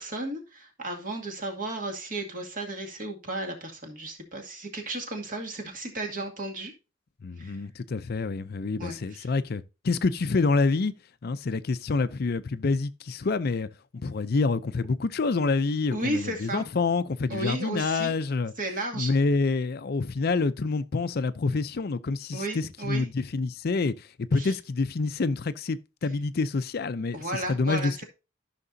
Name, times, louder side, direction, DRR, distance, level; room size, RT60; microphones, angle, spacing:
voice 1, 0.0-6.7 7.4-7.6 8.8-9.3 15.9-16.6 17.3-18.1 18.6-19.1 22.3-23.0 24.4-24.5 27.1-28.0, right 2 dB, 45° right, 2.3 m, -34 dB
voice 2, 7.2-10.9 11.2-13.7 13.9-18.5 18.9-28.0, left 3 dB, 50° left, 0.5 m, -27 dB
13.5 x 5.9 x 2.7 m
head